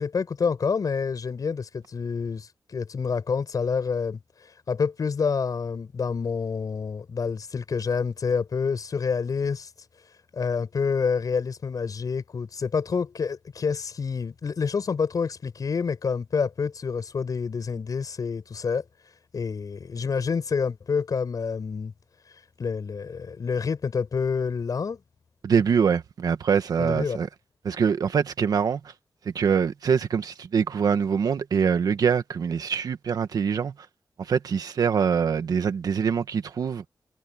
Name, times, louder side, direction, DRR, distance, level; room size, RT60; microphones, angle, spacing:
voice 1, 0.0-4.2 4.7-9.7 10.3-18.8 19.3-21.9 22.6-25.0 26.8-27.2, left 5 dB, 70° left, 7.2 m, -28 dB
voice 2, 25.4-27.3 27.6-28.9 29.3-33.7 34.2-36.8, right 6 dB, 85° right, 1.8 m, -24 dB
cardioid pair, 55°, 6 cm